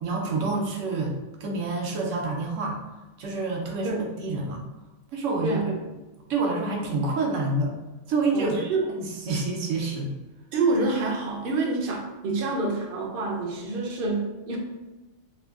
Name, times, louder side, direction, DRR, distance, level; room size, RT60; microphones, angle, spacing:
voice 1, 0.0-1.1 1.4-2.8 3.2-4.6 5.1-5.6 6.3-7.7 8.1-8.6 8.9-10.1, right 3 dB, 90° right, 0 dB, 1.0 m, -27 dB
voice 2, 5.4-5.8 8.3-8.8 10.5-14.6, right 3 dB, 60° right, 0 dB, 0.6 m, -27 dB
3.3 x 2.2 x 2.3 m, 1.1 s
omnidirectional pair, 1.2 m